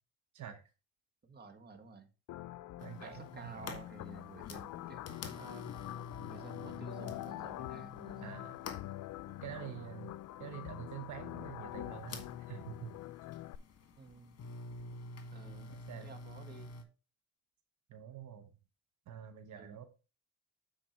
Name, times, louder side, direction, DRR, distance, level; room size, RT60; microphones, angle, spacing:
voice 1, 1.2-2.1 2.8-5.9 6.2-8.4 9.3-10.1 14.0-14.4 15.3-16.7 19.6-19.8, right 3 dB, 35° right, 7 dB, 1.6 m, -53 dB
sound 1, 2.3-13.6, left 15 dB, 75° left, 0.5 m, -45 dB
sound 2, 2.8-16.8, left 3 dB, 55° left, 1.5 m, -49 dB
voice 2, 2.8-3.8 8.2-8.6 9.4-10.1 10.4-12.9 15.9-16.1 17.9-18.5 19.1-19.9, right 10 dB, 75° right, 7 dB, 1.1 m, -46 dB
9.0 x 4.3 x 4.5 m, 0.32 s
cardioid pair, 90°, 30 cm